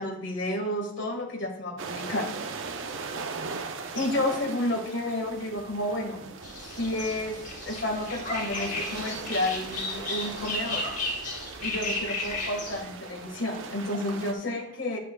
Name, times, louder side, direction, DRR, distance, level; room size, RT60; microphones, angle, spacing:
voice 1, 0.0-2.3 3.9-6.4 6.8-10.9 11.6-15.0, left 1 dB, 75° left, 2 dB, 1.6 m, -31 dB
sound 1, 1.8-14.3, right 4 dB, 90° right, 0.7 m, -39 dB
sound 2, 6.4-12.8, left 2 dB, 40° left, 1.8 m, -34 dB
9.7 x 8.3 x 2.3 m, 0.74 s
head